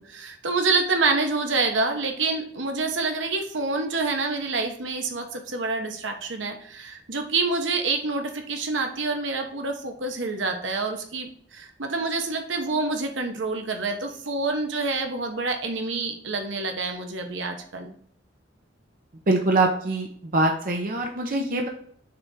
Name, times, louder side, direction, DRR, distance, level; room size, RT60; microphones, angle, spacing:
voice 1, 0.0-17.9, right 3 dB, 75° right, 4 dB, 1.1 m, -27 dB
voice 2, 19.3-21.7, right 2 dB, 50° right, 2 dB, 0.9 m, -23 dB
6.6 x 3.5 x 4.1 m, 0.63 s
head